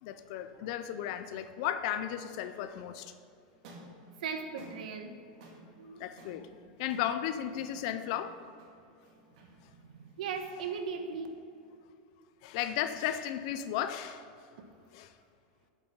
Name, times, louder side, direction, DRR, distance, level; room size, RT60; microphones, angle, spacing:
voice 1, 0.0-3.1 6.0-6.5 6.8-8.4 12.4-14.3 14.9-15.1, left 10 dB, 50° left, 10 dB, 0.5 m, -34 dB
sound 1, 3.5-11.8, right 1 dB, 60° right, 2.2 m, -56 dB
voice 2, 3.9-5.5 5.8-6.1 6.7-6.8 9.8-11.3 14.6-14.7, right 5 dB, 90° right, 6 dB, 1.2 m, -39 dB
8.7 x 8.1 x 5.4 m, 2.6 s
supercardioid pair, 160°, 4 cm